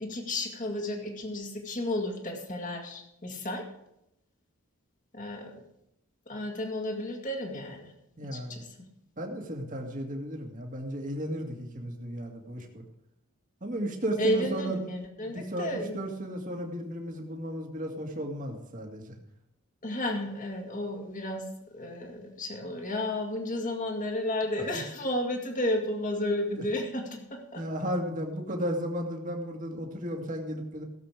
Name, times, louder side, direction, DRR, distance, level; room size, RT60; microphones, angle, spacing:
voice 1, 0.0-3.7 5.1-5.6 6.3-7.9 8.3-8.8 14.2-16.0 19.8-27.6, left 1 dB, 35° left, 2 dB, 2.1 m, -32 dB
voice 2, 8.2-8.6 9.2-12.8 13.6-14.8 15.2-19.2 27.6-30.8, equal, 35° right, 2 dB, 2.0 m, -34 dB
16.5 x 7.6 x 4.9 m, 0.83 s
head